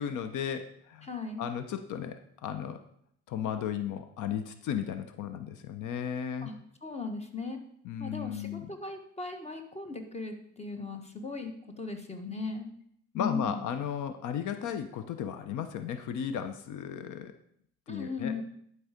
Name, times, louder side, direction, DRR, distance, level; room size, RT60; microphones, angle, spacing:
voice 1, 0.0-1.1 1.4-2.8 3.3-6.5 7.8-8.7 13.1-17.3 17.9-18.4, left 8 dB, 80° left, 10 dB, 0.7 m, -35 dB
voice 2, 1.0-1.4 6.4-6.5 6.8-7.6 8.0-12.7 13.1-13.7 17.9-18.4, left 4 dB, 20° left, 6 dB, 1.4 m, -37 dB
11.0 x 4.7 x 5.0 m, 0.69 s
cardioid pair, 90°, 30 cm